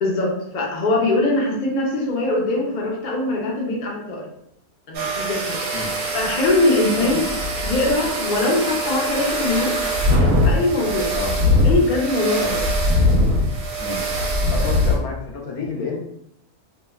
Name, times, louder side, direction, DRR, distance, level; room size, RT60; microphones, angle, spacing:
voice 1, 0.0-4.3 4.9-5.6 6.1-7.2 7.6-9.8 10.4-11.1 11.6-12.6 14.6-14.7, left 2 dB, 55° left, -2 dB, 0.5 m, -22 dB
sound 1, 4.9-15.0, left 1 dB, 75° right, 1.1 m, -21 dB
voice 2, 14.5-16.0, left 4 dB, 80° left, -1 dB, 1.1 m, -30 dB
3.1 x 2.2 x 2.2 m, 0.72 s
omnidirectional pair, 1.6 m